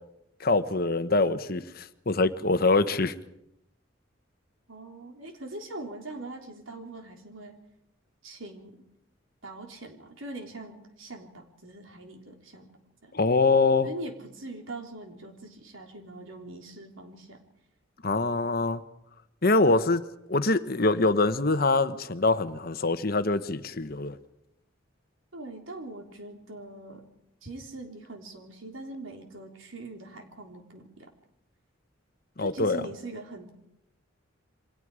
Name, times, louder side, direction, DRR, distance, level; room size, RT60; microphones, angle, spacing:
voice 1, 0.4-3.1 13.1-13.9 18.0-18.8 19.4-20.0 20.3-24.2 32.4-32.8, left 3 dB, 50° left, 11 dB, 1.1 m, -24 dB
voice 2, 4.7-7.6 8.2-8.8 9.4-12.7 13.0-13.2 13.8-17.4 25.3-27.1 27.4-31.1 32.4-33.5, right 2 dB, 80° right, 3 dB, 3.8 m, -42 dB
28.5 x 24.0 x 5.0 m, 0.80 s
head